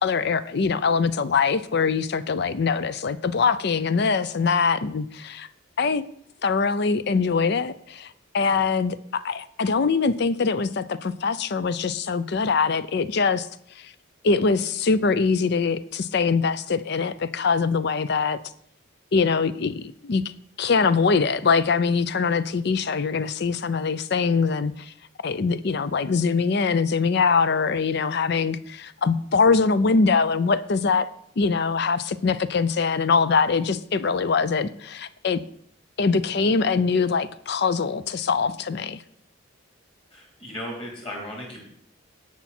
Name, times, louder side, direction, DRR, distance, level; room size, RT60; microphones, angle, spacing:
voice 1, 0.0-5.5 5.8-6.0 6.4-13.5 13.8-13.9 14.2-18.4 19.1-20.2 20.6-24.9 25.2-31.1 31.4-35.4 36.0-39.0, left 5 dB, 55° left, 15 dB, 0.5 m, -23 dB
voice 2, 40.1-41.6, equal, 25° left, -1 dB, 3.5 m, -36 dB
17.5 x 5.9 x 4.3 m, 0.68 s
head